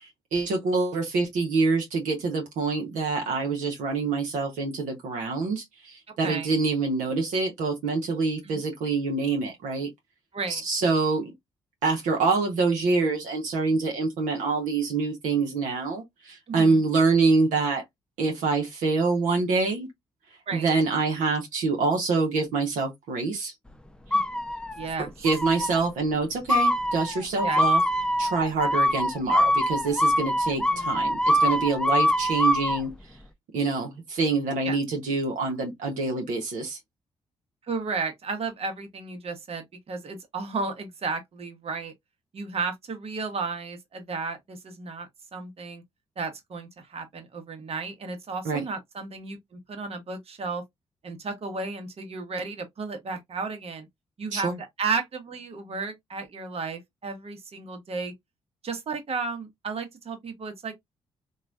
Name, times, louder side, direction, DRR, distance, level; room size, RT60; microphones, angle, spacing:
voice 1, 0.0-9.9 10.5-11.3 11.8-17.8 18.2-19.9 20.5-23.5 25.2-27.8 28.2-32.9 33.5-36.8 48.4-48.6 54.3-54.6, right 4 dB, 75° right, 0.8 m, -26 dB
voice 2, 6.2-6.5 8.4-8.6 10.3-10.6 16.5-16.8 20.5-20.7 24.1-24.2 24.8-25.1 27.4-27.6 30.7-30.9 34.6-34.8 37.7-41.9 42.3-45.8 46.2-50.6 51.0-53.9 54.2-58.1 58.6-60.7, right 4 dB, 50° right, 1.0 m, -33 dB
sound 1, 24.1-24.9 25.2-25.8 26.5-32.8, equal, 5° left, 0.5 m, -24 dB
3.0 x 2.3 x 2.4 m
hypercardioid pair, 40°, 13 cm